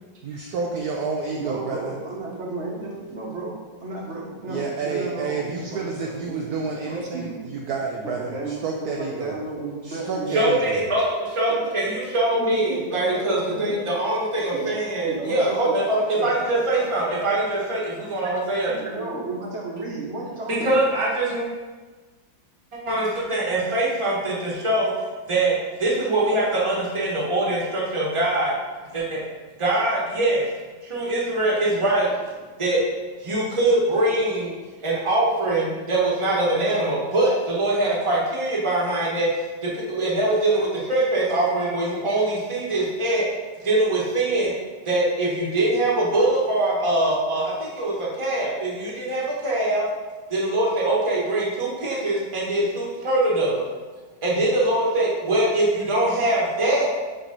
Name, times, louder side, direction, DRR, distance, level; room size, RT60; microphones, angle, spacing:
voice 1, 0.2-2.0 4.5-9.4 9.8-10.8, right 4 dB, 70° right, 0 dB, 1.0 m, -29 dB
voice 2, 1.3-3.5 3.8-7.4 8.0-10.6 11.5-11.7 12.3-13.8 14.5-14.8 15.0-15.7 16.1-16.3 16.5-16.6 17.3-17.4 18.7-20.8, right 2 dB, 45° right, -3 dB, 1.3 m, -33 dB
voice 3, 10.3-19.1 20.5-21.5 22.7-24.9 25.3-28.5 28.9-29.2 29.6-30.4 30.8-32.1 32.6-32.8 33.2-34.5 34.8-39.3 39.6-43.3 43.6-44.5 44.8-49.8 50.3-53.6 54.2-56.9, right 1 dB, 20° right, -5 dB, 1.2 m, -23 dB
6.0 x 3.3 x 5.2 m, 1.3 s
omnidirectional pair, 1.9 m